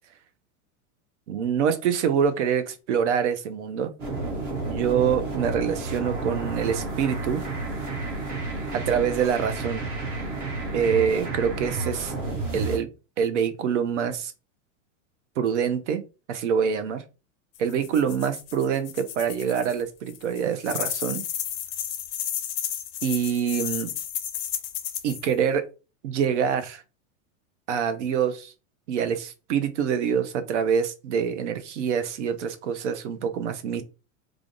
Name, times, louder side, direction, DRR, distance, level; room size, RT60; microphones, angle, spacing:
voice 1, 1.3-3.9 4.7-7.4 8.7-9.8 10.7-12.1 12.5-12.9 13.2-14.3 15.4-16.0 16.3-17.0 17.6-21.2 23.0-23.9 25.0-25.7 26.0-26.8 27.7-28.5 28.9-33.8, right 7 dB, 55° right, 0.7 m, -25 dB
sound 1, 4.0-12.8, right 3 dB, 20° right, 0.6 m, -31 dB
sound 2, 17.6-19.8 20.1-25.3, left 10 dB, 45° left, 0.5 m, -32 dB
3.4 x 2.4 x 3.7 m
supercardioid pair, 175°, 41 cm